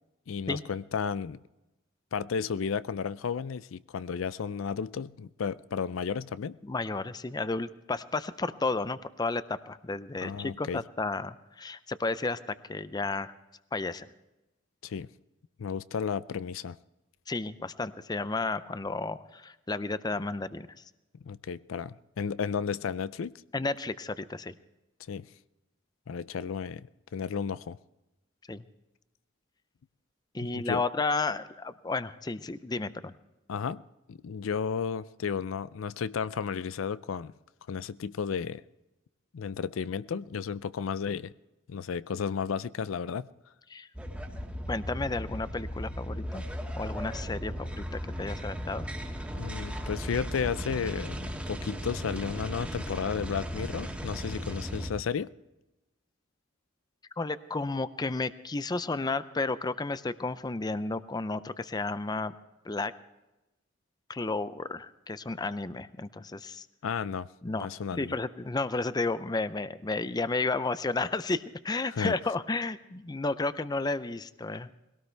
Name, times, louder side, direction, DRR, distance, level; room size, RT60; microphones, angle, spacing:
voice 1, 0.3-1.4 2.1-6.6 10.2-10.8 14.8-15.1 15.6-16.8 21.2-23.3 25.1-25.3 26.1-27.8 30.5-30.8 33.5-33.8 34.1-37.3 37.7-38.6 39.3-41.3 41.7-43.3 49.4-51.2 51.5-55.3 66.8-68.2 72.0-72.1, left 6 dB, 85° left, 17 dB, 0.4 m, -33 dB
voice 2, 6.6-13.3 13.7-14.1 17.3-20.7 23.5-24.5 28.5-28.6 30.3-33.1 43.7-43.9 44.7-46.4 46.8-48.9 57.2-62.3 62.6-62.9 64.1-66.7 67.4-74.7, left 3 dB, 20° left, 14 dB, 0.5 m, -32 dB
sound 1, 43.9-54.9, equal, 5° right, 1.8 m, -36 dB
21.0 x 17.5 x 3.4 m, 0.98 s
head